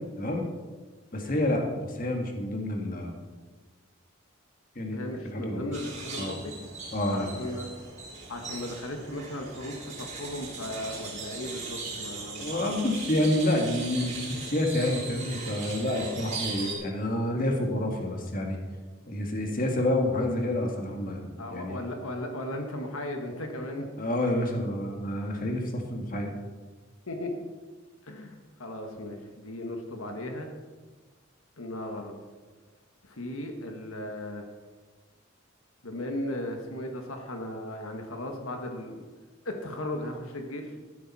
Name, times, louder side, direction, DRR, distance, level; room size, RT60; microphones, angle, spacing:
voice 1, 0.2-0.5 1.1-3.2 4.8-5.0 5.3-5.6 6.2-6.3 6.9-7.5 12.4-18.6 19.1-21.8 24.0-26.3, left 1 dB, 40° left, 2 dB, 1.8 m, -28 dB
voice 2, 4.9-6.6 7.1-7.7 8.3-12.7 21.4-23.9 27.1-27.3 28.0-30.5 31.6-32.1 33.0-34.4 35.8-39.1 39.4-40.8, left 1 dB, 80° left, 3 dB, 1.6 m, -36 dB
sound 1, 5.7-16.7, right 4 dB, 35° right, 3.8 m, -39 dB
13.5 x 11.5 x 4.3 m, 1.4 s
head